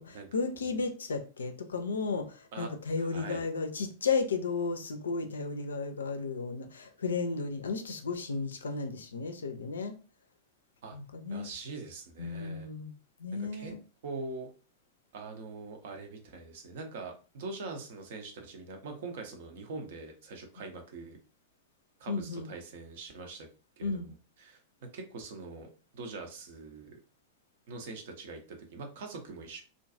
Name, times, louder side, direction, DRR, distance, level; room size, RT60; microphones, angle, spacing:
voice 1, 0.0-9.9 10.9-11.5 12.2-12.9 13.2-13.8 22.1-22.5 23.8-24.1, left 4 dB, 70° left, 0.4 m, -34 dB
voice 2, 3.0-3.5 10.8-11.0 11.3-12.7 13.4-13.7 14.0-14.5 15.1-21.2 22.0-23.5 23.8-24.1 24.4-27.0 27.7-29.6, right 3 dB, 55° right, 0.6 m, -43 dB
2.5 x 2.2 x 2.5 m
figure-of-eight pair, 90°, 0 cm